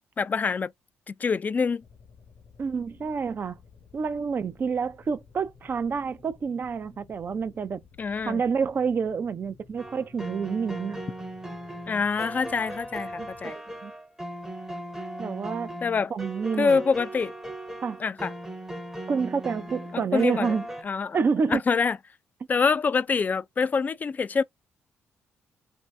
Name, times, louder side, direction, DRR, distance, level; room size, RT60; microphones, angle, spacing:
voice 1, 0.2-0.7 1.2-1.8 8.0-8.4 11.9-13.6 15.8-16.1 16.6-17.3 18.0-18.3 19.9-20.5 20.8-21.2 21.5-22.0 22.5-24.4, left 5 dB, 35° left, 0.3 m, -25 dB
sound 1, 1.8-13.5, left 5 dB, 60° left, 0.8 m, -54 dB
voice 2, 2.6-3.6 3.9-7.8 8.2-11.0 13.2-13.3 13.8-13.9 15.2-15.8 16.1-16.8 17.8-18.0 19.1-20.6 21.1-21.6, right 5 dB, 45° right, 0.4 m, -28 dB
sound 2, 9.8-20.8, right 1 dB, 10° right, 0.7 m, -38 dB
2.7 x 2.5 x 3.2 m
cardioid pair, 80°, 5 cm